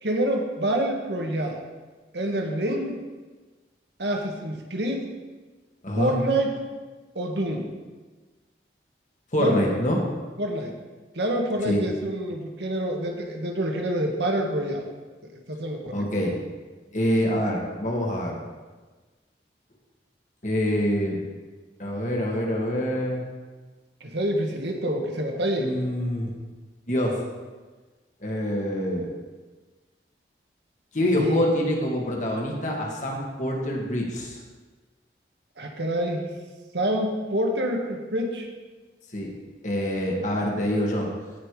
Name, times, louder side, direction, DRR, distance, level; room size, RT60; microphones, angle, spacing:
voice 1, 0.0-1.6 2.1-3.0 4.0-5.1 5.9-6.6 7.1-7.7 9.4-9.6 10.4-10.7 11.1-14.9 15.5-16.0 24.0-25.7 31.1-31.4 35.6-36.3 36.7-38.5, right 1 dB, 75° right, 1 dB, 1.7 m, -27 dB
voice 2, 5.8-6.2 9.3-10.0 11.6-11.8 15.9-16.3 16.9-18.4 20.4-21.2 21.8-23.2 25.6-26.3 26.9-27.2 28.2-29.1 30.9-34.4 39.1-39.3 39.6-41.1, equal, 45° left, -1 dB, 2.0 m, -25 dB
16.5 x 5.7 x 4.9 m, 1.3 s
head